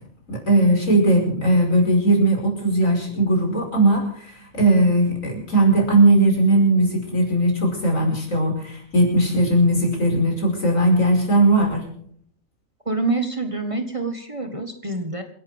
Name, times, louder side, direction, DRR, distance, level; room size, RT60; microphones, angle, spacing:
voice 1, 0.3-11.8, right 1 dB, 75° left, 1 dB, 5.9 m, -18 dB
voice 2, 12.9-15.2, right 3 dB, 25° right, 6 dB, 1.5 m, -26 dB
28.0 x 11.5 x 3.6 m, 0.65 s
omnidirectional pair, 1.4 m